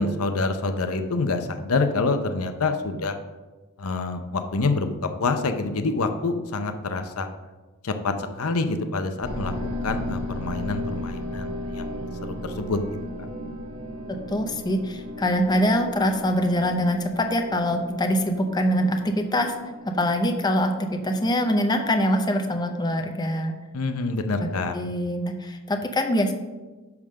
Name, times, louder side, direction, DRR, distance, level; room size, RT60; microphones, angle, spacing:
voice 1, 0.0-3.2 3.8-7.3 7.8-12.8 23.7-24.8, left 3 dB, 70° left, 8 dB, 0.7 m, -27 dB
sound 1, 9.2-23.2, left 1 dB, 65° right, 1.8 m, -36 dB
voice 2, 14.3-19.5 19.9-23.5 24.4-24.5 24.7-26.3, equal, 20° left, 4 dB, 0.6 m, -24 dB
10.5 x 3.7 x 6.4 m, 1.2 s
head